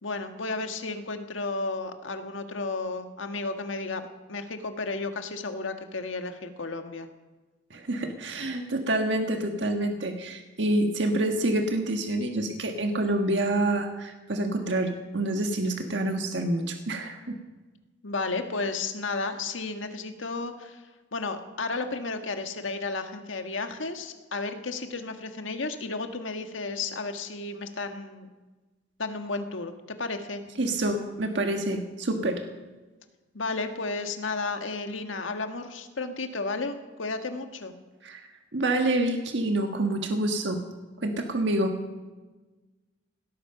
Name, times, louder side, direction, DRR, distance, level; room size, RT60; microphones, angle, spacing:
voice 1, 0.0-7.1 18.0-20.8 21.1-28.3 29.0-30.4 33.3-37.7, left 3 dB, 85° left, 6 dB, 1.6 m, -33 dB
voice 2, 7.7-17.4 30.6-32.4 38.0-38.2 38.5-40.6 41.0-41.8, right 1 dB, 65° right, 4 dB, 1.6 m, -27 dB
18.0 x 13.5 x 5.8 m, 1.2 s
head